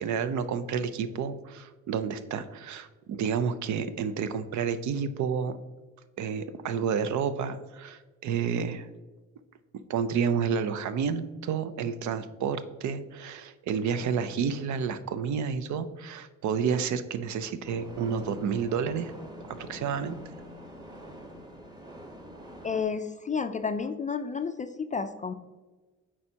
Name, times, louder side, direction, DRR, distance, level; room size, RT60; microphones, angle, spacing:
voice 1, 0.0-5.6 6.2-8.9 9.9-19.1 19.4-20.2, right 6 dB, 70° right, 12 dB, 0.5 m, -30 dB
sound 1, 17.6-22.8, equal, 15° right, 1.0 m, -45 dB
voice 2, 22.6-25.3, left 5 dB, 25° left, 9 dB, 0.3 m, -31 dB
8.6 x 4.3 x 2.8 m, 1.3 s
cardioid pair, 90°, 30 cm